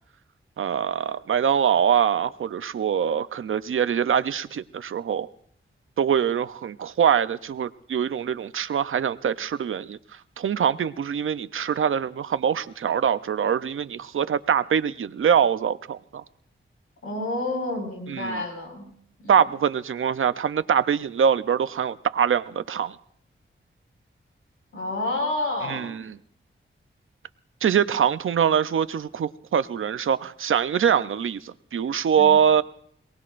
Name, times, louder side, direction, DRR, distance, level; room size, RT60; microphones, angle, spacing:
voice 1, 0.6-5.3 6.0-10.0 10.4-16.2 18.1-18.4 19.3-23.0 25.6-26.2 27.6-32.6, right 8 dB, 75° right, 0.6 m, -23 dB
voice 2, 17.0-18.9 19.2-19.4 24.7-26.0 32.2-32.4, left 2 dB, 90° left, 5.1 m, -29 dB
26.5 x 18.5 x 2.5 m
wide cardioid pair, 95°, 21 cm